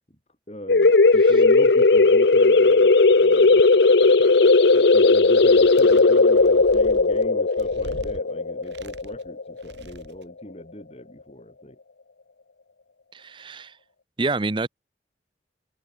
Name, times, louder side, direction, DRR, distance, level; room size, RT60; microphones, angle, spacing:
voice 1, 0.5-3.6 4.7-11.8, equal, 35° left, 6.4 m, -38 dB
sound 1, 0.7-10.0, left 3 dB, 75° left, 0.8 m, -16 dB
sound 2, 5.2-5.9 6.3-8.2 8.6-9.3 9.6-10.3, right 1 dB, 75° right, 2.4 m, -43 dB
voice 2, 13.1-13.7 14.2-14.7, right 3 dB, 25° right, 0.6 m, -27 dB
head